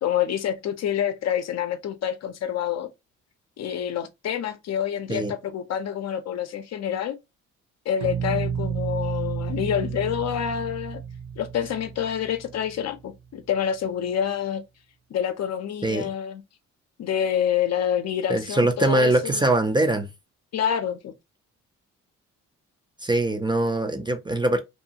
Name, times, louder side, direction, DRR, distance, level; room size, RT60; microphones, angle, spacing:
voice 1, 0.0-2.9 3.6-7.2 7.9-11.0 11.4-14.6 15.1-16.4 17.0-19.4 20.5-21.1, left 9 dB, 60° left, 0.6 m, -27 dB
sound 1, 8.0-12.9, right 7 dB, 70° right, 0.9 m, -31 dB
voice 2, 18.3-20.1 23.0-24.6, right 2 dB, 15° right, 0.4 m, -22 dB
2.6 x 2.3 x 2.8 m
cardioid pair, 90°, 30 cm